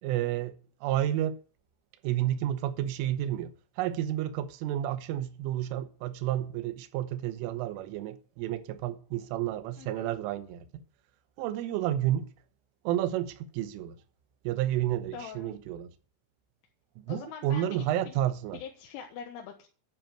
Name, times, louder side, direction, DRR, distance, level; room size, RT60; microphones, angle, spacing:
voice 1, 0.0-1.4 2.0-3.5 3.8-10.7 11.4-12.3 12.8-14.0 14.4-15.9 17.0-18.6, right 12 dB, 85° right, 3.5 m, -31 dB
voice 2, 15.1-15.5 17.1-18.2 18.5-19.7, left 7 dB, 80° left, 3.7 m, -43 dB
10.5 x 5.9 x 9.0 m
omnidirectional pair, 5.6 m